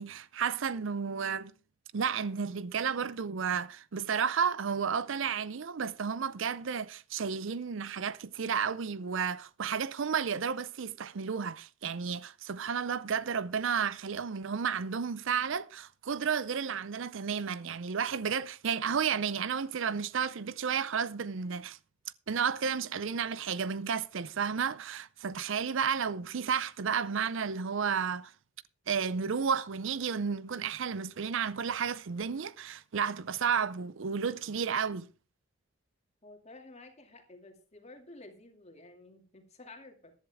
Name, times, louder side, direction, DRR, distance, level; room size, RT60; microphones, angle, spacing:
voice 1, 0.0-1.5 1.9-21.8 22.3-28.3 28.9-35.1, right 6 dB, 60° right, 0.5 m, -32 dB
voice 2, 36.2-40.1, left 2 dB, 30° left, 2.4 m, -52 dB
14.5 x 11.0 x 3.5 m
head